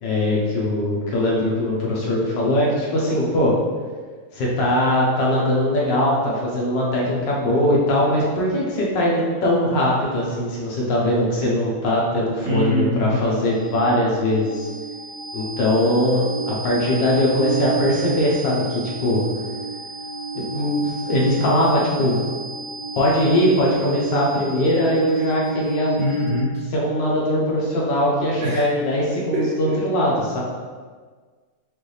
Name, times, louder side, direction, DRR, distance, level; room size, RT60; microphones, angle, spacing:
voice 1, 0.0-3.5 4.3-14.7 15.3-19.2 20.3-22.2 22.9-26.0 26.7-30.4, left 1 dB, 85° left, -4 dB, 1.7 m, -21 dB
voice 2, 12.4-13.1 26.0-26.5 28.4-28.6 29.3-29.7, equal, 85° right, -6 dB, 1.9 m, -23 dB
sound 1, 12.8-26.7, right 4 dB, 60° right, 1.6 m, -31 dB
5.2 x 2.6 x 3.2 m, 1.5 s
omnidirectional pair, 1.9 m